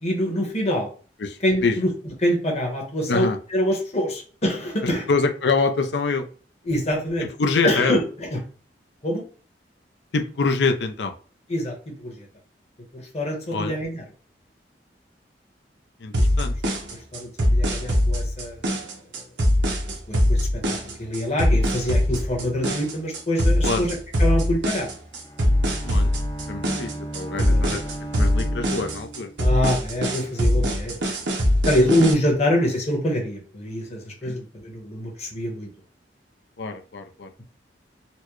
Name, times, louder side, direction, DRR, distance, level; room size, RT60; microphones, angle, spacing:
voice 1, 0.0-0.9 1.4-1.9 2.2-5.0 6.6-7.3 7.6-8.4 9.0-9.2 11.5-12.3 12.9-14.0 17.1-18.8 19.6-19.7 20.1-24.9 27.4-27.8 29.4-31.0 31.6-35.7, equal, 40° left, -1 dB, 1.2 m, -25 dB
voice 2, 1.2-1.8 3.1-3.4 5.1-6.3 7.2-8.0 10.1-11.1 13.5-13.8 16.0-16.5 23.6-23.9 25.8-26.2 26.5-27.8 28.1-29.3 34.2-34.4 36.6-37.3, left 4 dB, 75° left, 6 dB, 0.5 m, -25 dB
sound 1, 16.1-32.1, equal, 80° right, 0.9 m, -22 dB
Bowed string instrument, 25.0-29.7, right 1 dB, 20° left, 0.5 m, -36 dB
4.1 x 2.2 x 3.0 m, 0.40 s
head